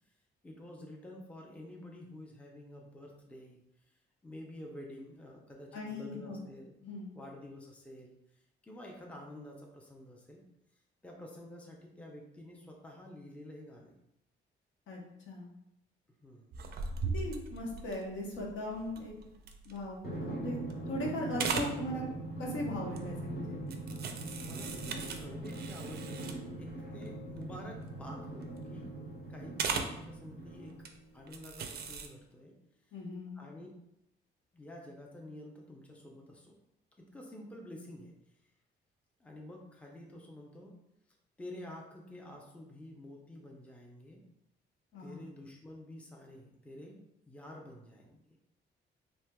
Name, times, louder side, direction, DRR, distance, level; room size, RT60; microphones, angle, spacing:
voice 1, 0.4-3.6 4.2-6.7 7.1-8.2 8.6-10.4 11.0-13.9 16.2-16.5 24.4-28.9 29.3-30.9 31.1-32.6 33.3-33.7 34.5-36.6 37.0-38.1 39.2-40.8 41.4-44.3 45.0-47.0 47.3-48.2, left 1 dB, 5° left, 0 dB, 0.5 m, -49 dB
voice 2, 5.7-6.5 6.8-7.1 14.9-15.5 17.1-19.1 19.6-20.6 20.9-22.0 22.4-23.6 32.9-33.4 44.9-45.2, left 1 dB, 70° left, -2 dB, 0.9 m, -39 dB
sound 1, 16.5-20.2 20.6-21.0 21.3-21.8 22.9-23.2 23.7-26.6 27.0-27.1 27.4-27.6 27.9-28.6 29.6-30.0 30.7-30.9 31.3-32.1, right 5 dB, 55° right, 0.4 m, -38 dB
Drum, 20.0-31.1, right 2 dB, 55° left, 1.2 m, -41 dB
3.2 x 2.8 x 2.2 m, 0.82 s
cardioid pair, 90°, 20 cm